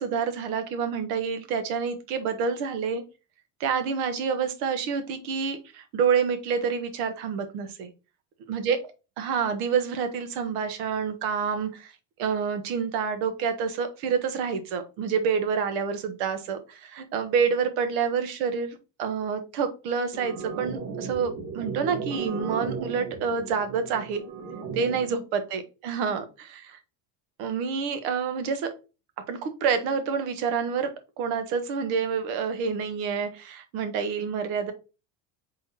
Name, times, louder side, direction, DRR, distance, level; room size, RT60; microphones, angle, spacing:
voice 1, 0.0-3.0 3.6-7.9 8.5-8.8 9.2-11.9 12.2-24.2 24.7-26.8 27.4-28.7 29.3-34.7, right 6 dB, 75° right, 8 dB, 1.1 m, -28 dB
sound 1, 20.1-25.1, right 5 dB, 45° right, 1.3 m, -35 dB
3.7 x 3.6 x 2.8 m, 0.30 s
supercardioid pair, 130°, 43 cm